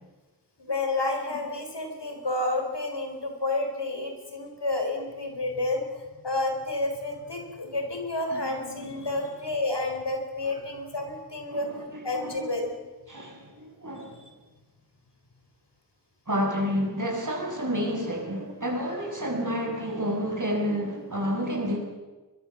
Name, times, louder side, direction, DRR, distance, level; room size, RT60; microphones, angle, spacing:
voice 1, 0.6-11.7 12.0-12.7, left 2 dB, 90° left, 4 dB, 4.4 m, -30 dB
voice 2, 8.3-9.3 10.4-10.5 11.5-12.5 13.1-14.2 16.3-21.8, equal, 50° right, 0 dB, 7.3 m, -30 dB
24.0 x 22.0 x 7.3 m, 1.2 s
wide cardioid pair, 45°, 40 cm